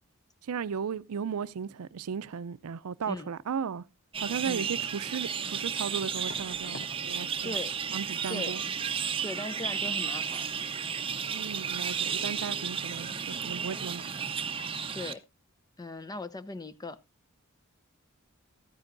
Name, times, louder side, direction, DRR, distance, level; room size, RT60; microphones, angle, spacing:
voice 1, 0.5-3.8 4.2-7.6 7.9-8.6 11.3-14.1, right 6 dB, 90° right, 0.5 m, -36 dB
sound 1, 4.1-15.1, right 7 dB, 25° right, 0.7 m, -33 dB
sound 2, 6.2-7.0 7.3-7.6 7.9-8.1 11.0-11.1 11.4-11.6 11.9-12.0, left 1 dB, 50° left, 3.6 m, -48 dB
voice 2, 7.4-7.7 8.3-8.6 9.2-10.5 14.9-15.2 15.8-17.0, left 2 dB, 20° left, 0.6 m, -38 dB
13.0 x 9.7 x 2.5 m
head